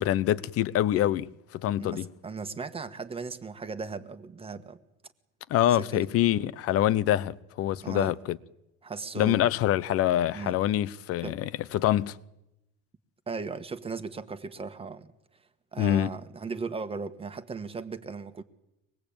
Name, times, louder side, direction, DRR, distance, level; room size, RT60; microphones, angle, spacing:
voice 1, 0.0-2.1 5.5-8.4 9.2-12.2 15.8-16.1, left 12 dB, 45° left, 0.9 m, -25 dB
voice 2, 1.8-4.8 5.7-6.1 7.8-8.2 8.8-9.5 10.3-10.5 11.2-11.4 13.3-15.1 15.7-18.4, right 4 dB, 20° right, 1.5 m, -37 dB
24.0 x 20.0 x 8.8 m
cardioid pair, 130°, 31 cm